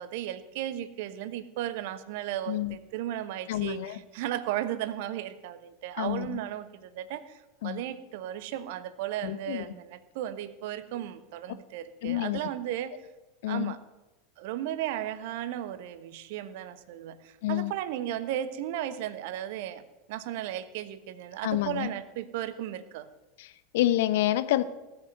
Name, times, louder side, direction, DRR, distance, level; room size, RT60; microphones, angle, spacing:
voice 1, 0.0-12.9 13.5-13.8 14.4-19.8 20.1-23.1, right 12 dB, 55° right, 13 dB, 1.2 m, -35 dB
voice 2, 3.5-4.0 6.0-6.4 7.6-7.8 9.2-9.7 12.0-12.4 13.4-13.7 17.4-17.7 21.4-21.9 23.4-24.6, left 14 dB, 60° left, 13 dB, 0.9 m, -28 dB
18.5 x 8.0 x 9.4 m, 1.1 s
figure-of-eight pair, 80°, 0 cm